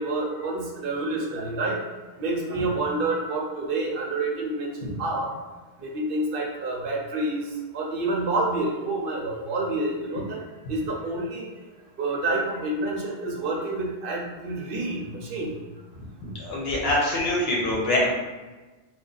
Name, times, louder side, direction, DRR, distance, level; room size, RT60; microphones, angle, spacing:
voice 1, 0.0-1.9 2.2-4.7 5.0-5.3 5.8-7.4 7.7-10.4 10.7-11.4 12.0-15.5, right 2 dB, 60° right, -1 dB, 0.8 m, -28 dB
voice 2, 16.4-18.1, left 1 dB, 70° left, -3 dB, 1.0 m, -24 dB
2.5 x 2.3 x 3.8 m, 1.2 s
omnidirectional pair, 1.1 m